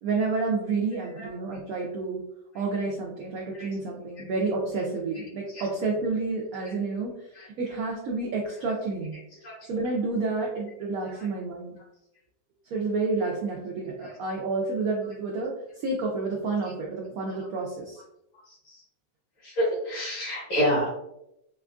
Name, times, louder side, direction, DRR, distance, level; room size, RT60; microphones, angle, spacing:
voice 1, 0.0-2.3 2.5-9.2 9.7-11.8 12.7-18.0, right 3 dB, 85° right, -1 dB, 0.7 m, -30 dB
voice 2, 19.4-20.9, equal, 85° left, -10 dB, 2.3 m, -27 dB
4.2 x 2.3 x 2.4 m, 0.82 s
omnidirectional pair, 2.1 m